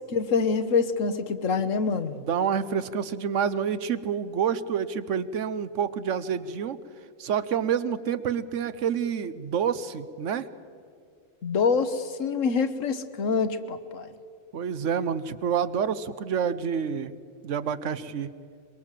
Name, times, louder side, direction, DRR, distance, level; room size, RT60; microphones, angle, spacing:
voice 1, 0.1-2.1 11.4-14.1, left 5 dB, 80° left, 10 dB, 1.5 m, -25 dB
voice 2, 2.2-6.8 7.2-10.5 14.5-17.1 17.4-18.3, right 7 dB, 75° right, 14 dB, 1.2 m, -28 dB
23.0 x 22.5 x 7.5 m, 2.3 s
omnidirectional pair, 1.3 m